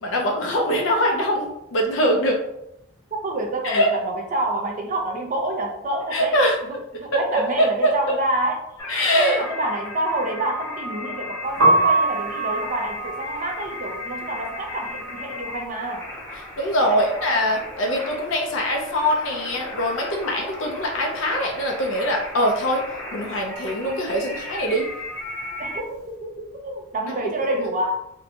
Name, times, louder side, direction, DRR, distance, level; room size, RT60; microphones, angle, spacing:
voice 1, 0.0-2.4 3.6-3.9 6.1-6.6 7.1-8.2 8.9-9.4 16.6-22.8 23.1-24.9, equal, 80° left, 1 dB, 0.5 m, -22 dB
voice 2, 3.2-8.6 9.1-16.1 16.9-17.0 25.6-28.0, right 1 dB, 40° right, 1 dB, 0.5 m, -28 dB
sound 1, 8.8-25.8, left 1 dB, 15° left, 0.5 m, -35 dB
Piano, 11.5-17.4 17.7-19.3 19.5-26.0, right 2 dB, 75° right, 0.7 m, -26 dB
2.6 x 2.1 x 2.7 m, 0.81 s
head